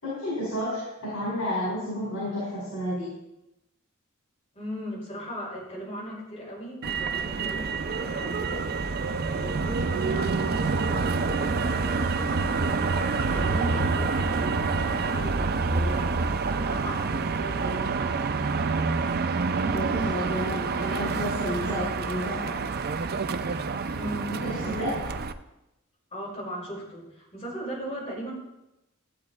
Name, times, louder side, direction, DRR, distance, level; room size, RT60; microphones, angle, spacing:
voice 1, 0.0-3.1 19.5-22.6 24.3-25.0, equal, 75° left, -7 dB, 5.4 m, -31 dB
voice 2, 4.5-12.1 12.6-16.2 16.7-18.4 23.9-24.9 26.1-28.3, right 1 dB, 30° left, -5 dB, 5.5 m, -38 dB
Motor vehicle (road), 6.8-25.3, right 4 dB, 50° right, 0.6 m, -27 dB
15.0 x 8.3 x 4.3 m, 0.92 s
head